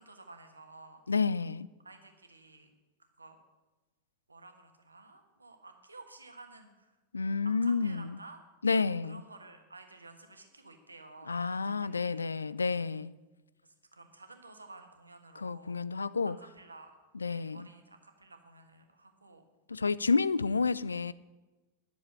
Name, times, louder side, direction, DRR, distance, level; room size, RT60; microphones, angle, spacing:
voice 1, 0.0-1.0 1.8-2.7 3.0-3.4 4.3-7.0 7.4-8.4 8.9-12.5 13.6-16.0 16.4-16.9 17.3-19.5, right 3 dB, 80° right, 1.4 m, -53 dB
voice 2, 1.1-1.7 7.1-8.2 8.6-9.2 11.3-13.1 15.4-16.4 17.1-17.7 19.7-21.1, left 4 dB, 75° left, 0.3 m, -30 dB
10.5 x 7.0 x 8.6 m
figure-of-eight pair, 90°, 0 cm